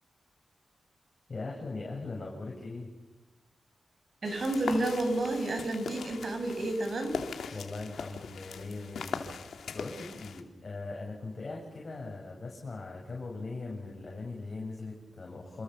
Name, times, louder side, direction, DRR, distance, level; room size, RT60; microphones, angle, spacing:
voice 1, 1.3-2.9 7.5-15.6, left 3 dB, 45° left, -1 dB, 7.8 m, -40 dB
sound 1, 4.2-10.4, left 6 dB, 90° left, 2.5 m, -40 dB
voice 2, 4.2-7.2, right 1 dB, 50° right, 5 dB, 7.9 m, -30 dB
29.0 x 27.5 x 7.3 m, 1.1 s
cardioid pair, 80°, 0 cm